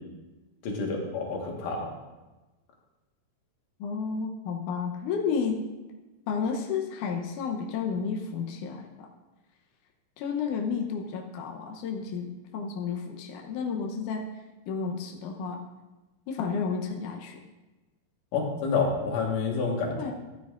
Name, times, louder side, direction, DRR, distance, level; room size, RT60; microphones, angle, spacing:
voice 1, 0.6-1.9 18.3-20.1, left 4 dB, 60° left, 0 dB, 2.7 m, -28 dB
voice 2, 3.8-5.6 6.3-8.8 10.2-14.3 14.7-15.6 16.3-17.4 20.0-20.1, left 6 dB, 80° left, 1 dB, 1.8 m, -31 dB
14.5 x 9.7 x 2.5 m, 1.1 s
omnidirectional pair, 4.7 m